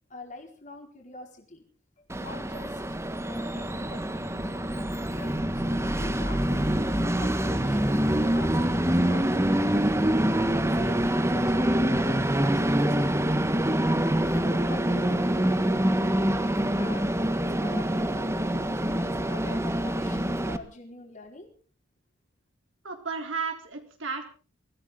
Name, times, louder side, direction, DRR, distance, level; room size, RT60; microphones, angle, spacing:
voice 1, 0.1-1.7 2.0-2.8 3.3-4.6 5.1-10.3 10.7-13.5 14.3-15.5 16.4-21.5, left 2 dB, 40° left, 2 dB, 4.6 m, -45 dB
Train, 2.1-20.6, right 1 dB, 15° right, 1.4 m, -25 dB
voice 2, 22.8-24.2, right 4 dB, 75° right, 4 dB, 3.7 m, -33 dB
24.0 x 16.0 x 3.8 m, 0.39 s
head